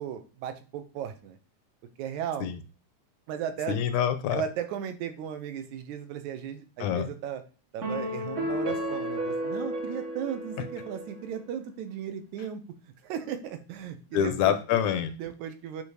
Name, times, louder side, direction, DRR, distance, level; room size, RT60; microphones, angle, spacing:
voice 1, 0.0-1.4 2.0-2.5 3.3-3.8 4.3-7.4 7.7-12.6 13.0-14.6 15.2-15.8, right 9 dB, 80° right, 8 dB, 2.1 m, -36 dB
voice 2, 3.7-4.4 6.8-7.1 14.1-15.1, left 9 dB, 80° left, 10 dB, 1.9 m, -26 dB
sound 1, 7.8-11.3, equal, 45° right, 1.0 m, -33 dB
8.4 x 2.8 x 4.6 m, 0.34 s
omnidirectional pair, 3.5 m